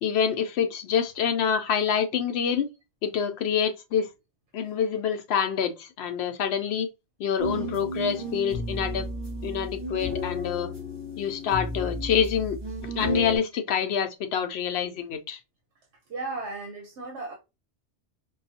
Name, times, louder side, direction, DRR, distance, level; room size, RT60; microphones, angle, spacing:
voice 1, 0.0-2.7 3.0-4.1 4.5-6.9 7.2-9.1 9.4-10.7 11.2-12.6 12.8-15.4, left 7 dB, 75° left, 0.8 m, -26 dB
sound 1, 7.4-13.4, equal, 25° right, 1.1 m, -33 dB
voice 2, 16.1-17.3, right 3 dB, 90° right, 1.1 m, -35 dB
5.3 x 2.3 x 2.7 m
omnidirectional pair, 1.1 m